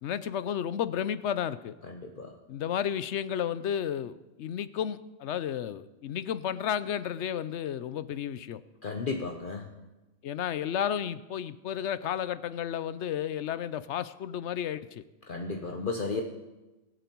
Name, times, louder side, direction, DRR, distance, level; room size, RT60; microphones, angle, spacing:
voice 1, 0.0-1.7 2.5-8.6 10.2-15.0, left 9 dB, 80° left, 15 dB, 1.0 m, -32 dB
voice 2, 1.9-2.3 8.8-9.7 15.3-16.2, left 4 dB, 50° left, 3 dB, 1.1 m, -33 dB
24.0 x 9.1 x 4.5 m, 1.1 s
omnidirectional pair, 1.2 m